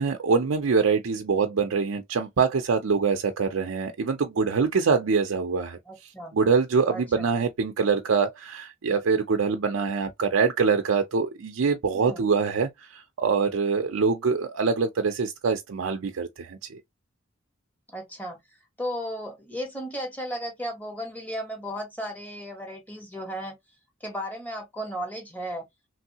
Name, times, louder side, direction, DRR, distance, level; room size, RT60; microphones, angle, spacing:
voice 1, 0.0-16.8, right 5 dB, 70° right, 0.5 m, -24 dB
voice 2, 5.9-6.4 6.9-7.3 11.9-12.3 17.9-18.4 18.8-23.5 24.0-25.7, equal, 10° left, 1.4 m, -35 dB
3.1 x 2.7 x 2.8 m
head